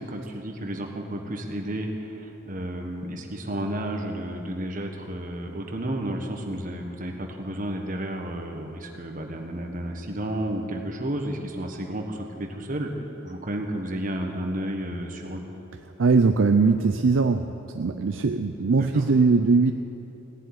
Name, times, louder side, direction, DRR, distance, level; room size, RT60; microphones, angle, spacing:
voice 1, 0.0-12.9 13.2-15.4 18.8-19.0, right 1 dB, 40° right, 2 dB, 1.5 m, -32 dB
voice 2, 16.0-17.5 17.7-19.7, right 4 dB, 70° right, 7 dB, 0.5 m, -20 dB
17.0 x 7.5 x 9.7 m, 3.0 s
head